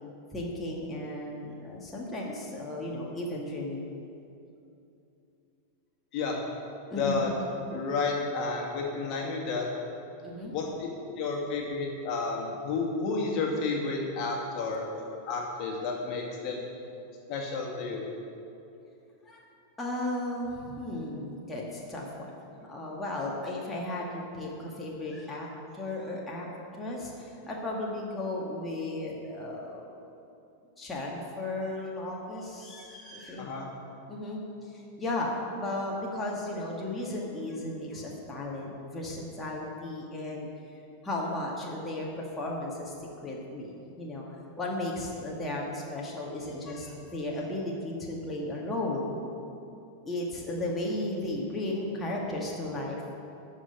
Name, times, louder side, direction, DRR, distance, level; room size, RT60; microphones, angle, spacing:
voice 1, 0.3-3.9 6.9-7.3 10.2-10.5 19.3-19.4 19.8-22.3 22.7-25.5 25.7-26.5 26.8-29.9 30.8-33.5 34.1-44.2 44.6-49.1 50.1-53.0, left 1 dB, 15° left, -3 dB, 2.0 m, -35 dB
voice 2, 7.0-7.3 7.7-9.7 10.5-10.9 11.2-16.7 17.3-18.0 33.4-33.7, left 4 dB, 40° left, -1 dB, 2.2 m, -31 dB
13.5 x 5.6 x 9.0 m, 2.7 s
figure-of-eight pair, 90°, 0 cm